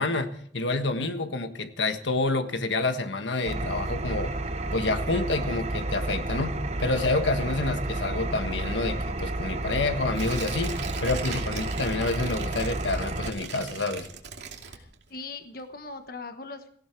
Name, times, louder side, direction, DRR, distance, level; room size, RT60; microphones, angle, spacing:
voice 1, 0.0-4.3 4.7-14.1, left 2 dB, 85° left, 8 dB, 1.5 m, -28 dB
Engine, 3.5-13.3, right 2 dB, 35° right, 0.9 m, -31 dB
Tearing, 10.1-15.2 15.6-15.7, right 6 dB, 75° right, 2.5 m, -39 dB
voice 2, 14.7-16.7, left 3 dB, 50° left, 7 dB, 1.3 m, -40 dB
18.0 x 16.5 x 4.6 m, 0.62 s
head